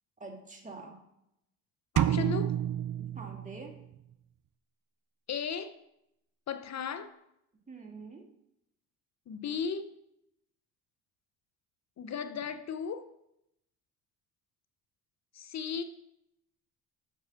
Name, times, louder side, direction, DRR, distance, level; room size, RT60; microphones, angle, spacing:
voice 1, 0.2-1.0 2.9-3.7 7.7-8.3, right 3 dB, 20° right, 2.3 m, -46 dB
voice 2, 1.9-2.6 5.3-5.8 6.5-7.1 9.3-10.0 12.0-13.1 15.3-15.8, left 6 dB, 40° left, 0.8 m, -35 dB
sound 1, 2.0-3.9, right 11 dB, 50° right, 0.6 m, -30 dB
7.4 x 6.3 x 6.7 m
hypercardioid pair, 65°, 42 cm